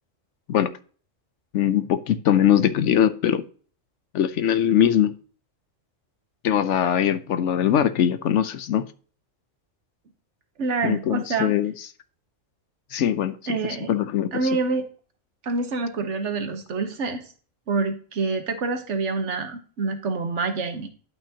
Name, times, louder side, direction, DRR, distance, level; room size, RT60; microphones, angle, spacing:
voice 1, 1.5-3.4 4.1-5.1 6.4-8.9 10.8-11.7 12.9-13.6 13.9-14.3, left 10 dB, 70° left, 0.9 m, -21 dB
voice 2, 10.6-11.5 13.5-13.9 14.3-14.9 15.4-17.2 17.7-20.9, right 4 dB, 65° right, 1.4 m, -27 dB
11.0 x 5.9 x 2.8 m
omnidirectional pair, 1.3 m